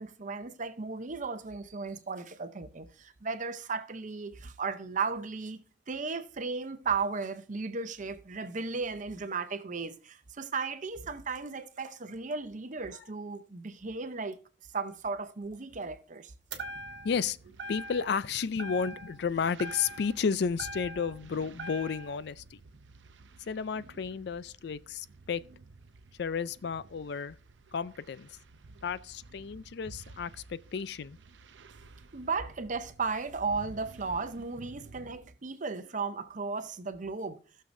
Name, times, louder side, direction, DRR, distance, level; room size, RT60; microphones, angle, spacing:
voice 1, 0.0-5.6 5.9-14.4 14.7-16.3 32.1-37.4, right 4 dB, 45° right, 0.7 m, -35 dB
sound 1, 16.5-17.3 17.6-18.3 18.6-19.3 19.6-21.2 21.6-22.2, right 1 dB, 65° right, 1.3 m, -42 dB
sound 2, 16.5-35.2, right 3 dB, 90° right, 0.6 m, -53 dB
voice 2, 17.0-17.4 17.7-22.6 23.5-25.4 26.2-27.4 27.7-28.3 28.8-31.2, left 6 dB, 65° left, 0.4 m, -32 dB
15.5 x 6.6 x 2.6 m
head